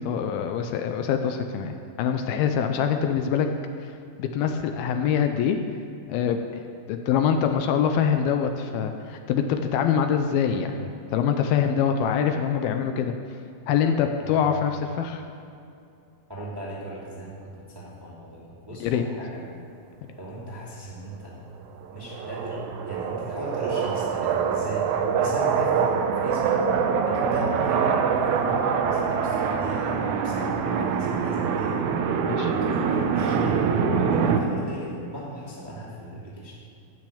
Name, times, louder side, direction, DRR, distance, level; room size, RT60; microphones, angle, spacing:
voice 1, 0.0-3.5 3.8-3.9 4.2-5.6 6.1-6.6 6.9-13.1 13.7-15.2 18.8-19.0 32.3-32.5, left 7 dB, 80° left, 6 dB, 2.5 m, -24 dB
voice 2, 14.2-14.9 16.3-19.5 20.2-21.4 21.9-22.6 22.8-26.7 27.0-31.8 32.5-33.6 34.0-36.6, right 1 dB, 10° right, -6 dB, 1.7 m, -37 dB
sound 1, 21.8-34.4, right 6 dB, 80° right, 1.7 m, -24 dB
14.0 x 6.5 x 8.6 m, 2.5 s
omnidirectional pair, 4.5 m